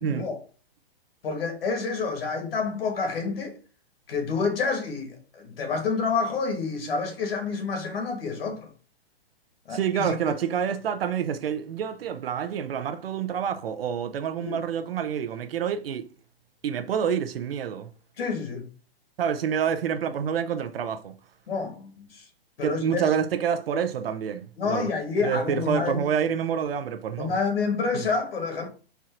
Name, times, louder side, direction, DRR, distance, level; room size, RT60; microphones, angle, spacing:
voice 1, 1.2-3.5 4.1-8.7 9.7-10.2 14.4-14.6 18.2-18.7 21.5-22.2 22.6-23.1 24.6-26.1 27.2-28.7, left 4 dB, 70° left, 1.5 m, -28 dB
voice 2, 9.7-16.1 16.6-17.9 19.2-21.2 22.6-24.9 25.2-27.3 27.9-28.1, right 8 dB, 70° right, 0.7 m, -28 dB
4.6 x 2.5 x 4.3 m
hypercardioid pair, 170°, 31 cm